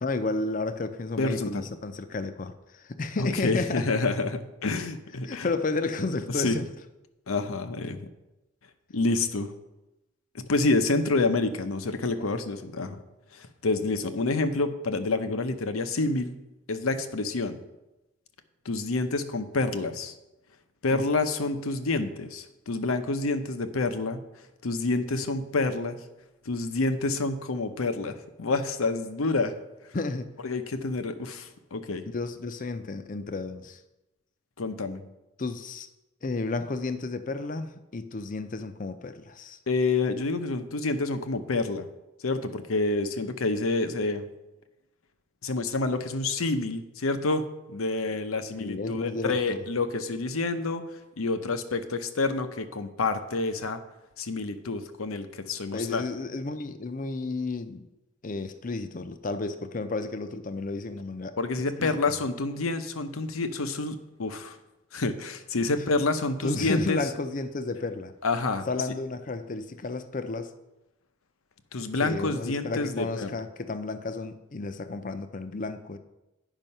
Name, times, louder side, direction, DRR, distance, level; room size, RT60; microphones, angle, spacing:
voice 1, 0.0-3.9 5.2-6.7 12.3-12.4 20.9-21.0 29.9-30.3 32.1-33.8 35.4-35.9 36.2-39.6 48.6-49.6 55.7-57.9 58.2-61.4 61.8-62.0 66.4-68.1 68.7-70.5 72.0-76.0, left 3 dB, 40° left, 10 dB, 0.5 m, -32 dB
voice 2, 1.2-1.7 3.2-5.5 6.3-6.6 7.3-8.0 8.9-9.5 10.3-13.0 13.3-16.4 16.7-17.6 18.7-20.1 20.8-24.2 24.6-26.0 26.5-29.5 30.4-32.0 34.6-35.0 39.7-41.9 42.2-44.2 45.4-50.8 51.2-53.8 54.2-56.0 61.4-64.6 64.9-67.0 68.2-68.6 71.7-73.4, left 3 dB, 85° left, 9 dB, 0.7 m, -28 dB
9.0 x 5.5 x 5.4 m, 0.97 s
head